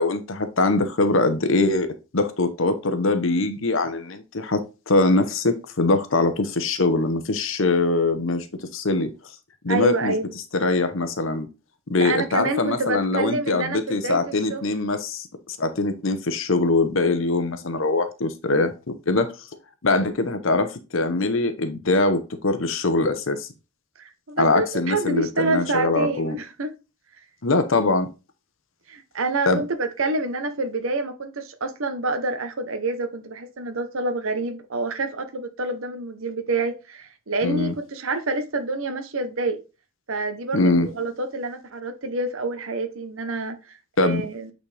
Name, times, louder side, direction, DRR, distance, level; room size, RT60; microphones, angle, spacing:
voice 1, 0.0-1.9 2.1-8.5 8.7-9.1 9.6-10.1 10.5-11.5 11.9-18.7 19.1-19.3 19.8-23.5 24.4-26.4 27.4-28.1 29.5-29.6 37.4-37.7 40.5-40.9 44.0-44.2, left 2 dB, 60° left, 0.9 m, -22 dB
voice 2, 9.7-10.3 12.0-14.2 14.5-14.6 24.0-26.7 28.9-39.6 40.1-44.5, right 2 dB, 65° right, 0.9 m, -27 dB
8.5 x 4.3 x 3.3 m
head